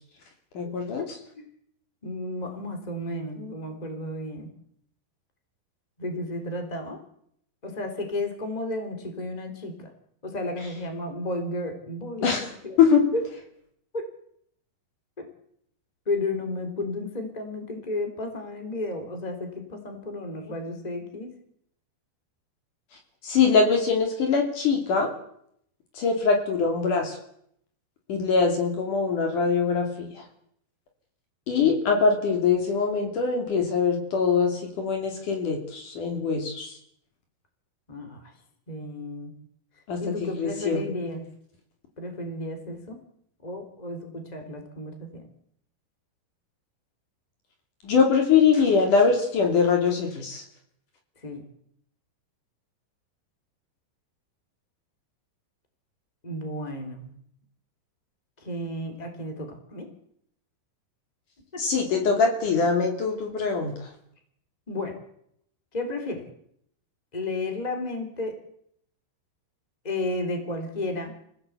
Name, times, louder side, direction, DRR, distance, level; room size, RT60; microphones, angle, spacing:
voice 1, 0.5-1.2 12.2-12.5 12.8-13.1 23.2-25.1 25.9-27.2 28.1-30.2 31.5-36.7 39.9-40.8 47.8-50.4 61.6-63.9, left 5 dB, 55° left, 3 dB, 4.0 m, -23 dB
voice 2, 2.0-4.5 6.0-7.0 7.6-9.9 10.2-12.8 13.1-13.2 13.9-14.0 16.0-21.3 37.9-38.3 38.7-39.3 40.0-41.2 42.0-43.0 43.4-45.2 51.2-51.4 56.2-57.1 58.4-59.9 61.5-61.6 64.7-64.9 65.7-66.2 67.1-68.3 69.8-71.1, left 2 dB, 10° left, 6 dB, 3.1 m, -33 dB
25.5 x 17.0 x 8.2 m, 0.71 s
omnidirectional pair, 4.6 m